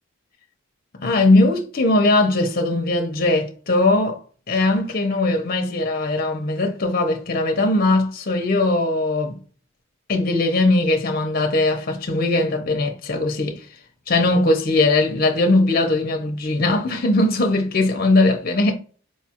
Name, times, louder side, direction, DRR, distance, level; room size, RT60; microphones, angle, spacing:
voice 1, 0.9-4.2 4.5-9.4 10.1-13.7 14.1-18.7, left 2 dB, 40° left, 0.5 m, -20 dB
4.6 x 2.3 x 2.8 m
head